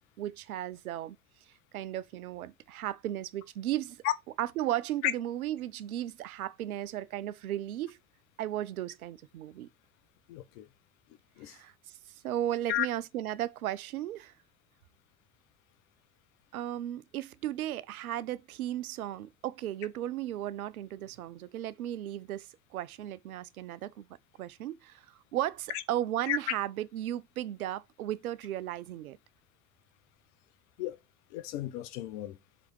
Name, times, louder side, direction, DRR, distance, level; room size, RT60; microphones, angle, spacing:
voice 1, 0.2-1.2 1.7-4.0 4.4-8.0 8.4-9.7 11.5-12.0 12.2-14.3 16.5-24.1 24.4-29.2, right 12 dB, 65° right, 0.7 m, -35 dB
voice 2, 10.3-10.7 11.4-11.6 12.7-12.9 26.3-26.4 30.8-31.0 31.3-32.4, left 13 dB, 50° left, 1.1 m, -32 dB
7.2 x 3.5 x 4.6 m
figure-of-eight pair, 75°, 46 cm